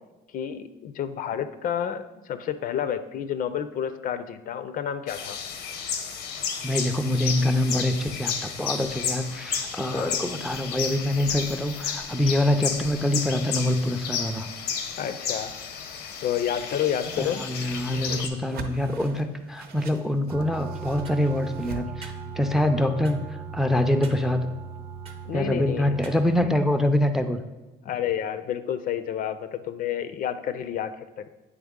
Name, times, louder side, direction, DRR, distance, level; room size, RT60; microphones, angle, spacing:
voice 1, 0.3-5.4 9.9-10.2 15.0-15.5 16.2-17.5 25.2-26.0 27.8-31.2, left 9 dB, 55° left, 11 dB, 0.4 m, -30 dB
sound 1, 5.1-18.3, left 7 dB, 85° left, 0.7 m, -32 dB
voice 2, 6.6-14.5 17.2-24.5 25.3-27.4, left 1 dB, ahead, 8 dB, 0.4 m, -25 dB
Whoosh swoosh swish, 16.8-21.8, right 5 dB, 65° right, 0.7 m, -42 dB
sound 2, 20.3-26.4, right 6 dB, 35° right, 0.8 m, -38 dB
8.8 x 3.3 x 3.6 m, 1.1 s
cardioid pair, 110°, 17 cm